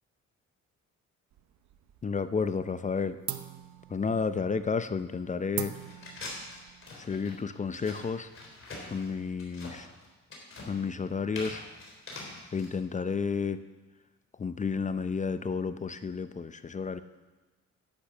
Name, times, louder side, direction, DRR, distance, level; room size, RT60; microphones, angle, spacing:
sound 1, 1.3-2.2 2.5-2.9 3.2-8.4, right 12 dB, 70° right, 0.7 m, -42 dB
voice 1, 2.0-3.2 3.9-5.8 6.9-8.3 8.9-9.9 10.6-11.7 12.5-13.6 14.4-17.0, left 5 dB, 25° left, 12 dB, 0.5 m, -31 dB
sound 2, 5.7-12.7, left 2 dB, 45° left, 3.5 m, -44 dB
10.5 x 8.6 x 6.0 m, 1.2 s
cardioid pair, 90°, 30 cm